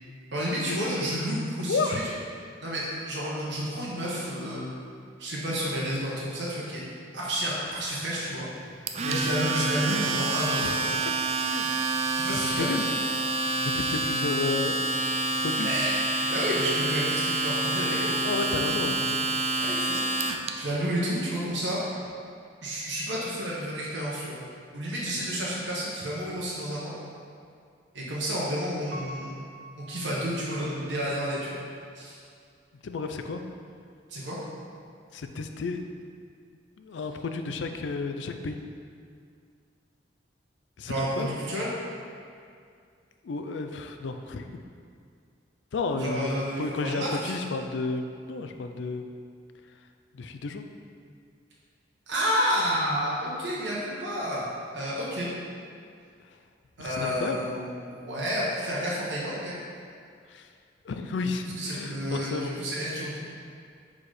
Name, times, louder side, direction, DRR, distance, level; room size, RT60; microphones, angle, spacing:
voice 1, 0.3-2.1 2.6-4.6 5.2-6.8 7.1-8.5 9.1-10.9 12.1-12.7 15.6-16.0 16.3-18.2 19.6-20.0 20.5-21.8 22.6-24.4 24.7-26.9 27.9-29.4 29.8-31.6 31.9-32.2 34.1-34.4 40.9-41.7 46.0-47.4 52.1-54.5 54.7-55.3 56.8-59.6 61.6-63.2, equal, 80° right, -6 dB, 1.0 m, -30 dB
voice 2, 1.7-2.1 8.9-9.2 10.6-10.7 11.0-11.1 11.4-11.8 12.3-12.9 13.7-14.9 15.4-15.7 18.2-19.3 32.8-33.4 35.1-35.8 36.8-38.6 40.8-41.3 43.2-44.6 45.7-49.1 50.1-50.6 56.3-56.4 56.8-57.4 60.3-60.5 60.8-62.6, left 4 dB, 80° left, 6 dB, 0.4 m, -32 dB
Domestic sounds home sounds, 8.9-20.5, right 2 dB, 35° right, 0.4 m, -28 dB
Piano, 28.9-30.9 31.5-31.6, equal, 60° right, 0.7 m, -45 dB
4.8 x 4.3 x 4.8 m, 2.3 s
head